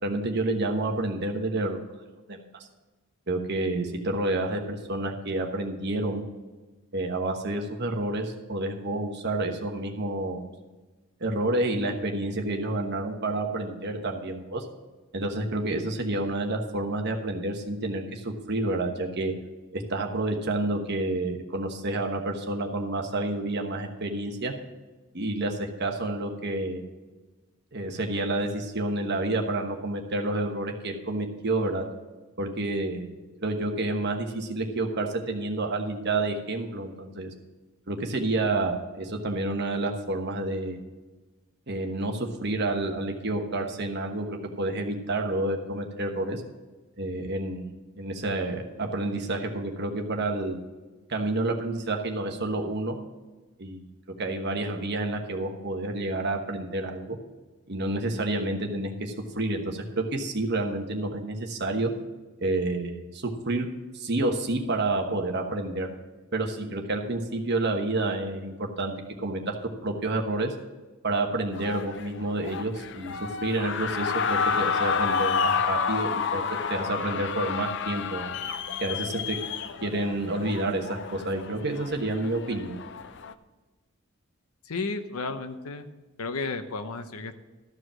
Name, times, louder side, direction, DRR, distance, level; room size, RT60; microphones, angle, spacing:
voice 1, 0.0-1.8 2.3-2.4 3.3-6.2 6.9-10.5 11.2-14.7 15.1-19.3 19.7-24.5 25.1-26.8 27.7-31.8 32.4-33.1 33.4-37.3 37.9-40.8 41.7-46.4 47.0-50.6 51.1-53.0 53.6-53.8 54.2-57.2 57.7-61.9 62.4-63.7 63.9-65.9 66.3-68.9 69.2-69.5 69.8-70.5 71.0-73.1 73.4-78.3 78.8-79.4 79.8-82.8, right 2 dB, 50° right, 3 dB, 1.2 m, -29 dB
sound 1, 71.5-83.3, left 6 dB, 55° left, 0.5 m, -30 dB
voice 2, 84.6-85.9 86.2-87.4, left 3 dB, 75° left, 9 dB, 0.8 m, -33 dB
13.0 x 4.9 x 7.5 m, 1.2 s
head